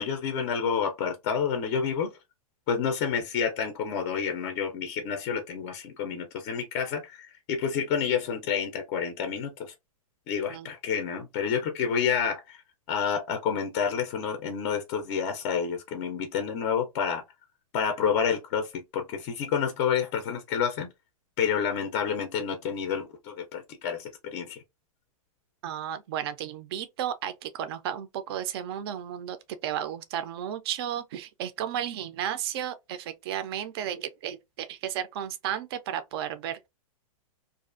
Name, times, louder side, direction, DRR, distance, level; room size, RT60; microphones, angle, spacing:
voice 1, 0.0-2.2 2.7-9.7 10.3-12.6 12.9-17.2 17.7-20.9 21.4-24.6, left 7 dB, 30° left, 0.4 m, -29 dB
voice 2, 25.6-29.4 29.6-36.7, right 10 dB, 45° right, 0.4 m, -33 dB
2.5 x 2.3 x 2.4 m
hypercardioid pair, 155°, 18 cm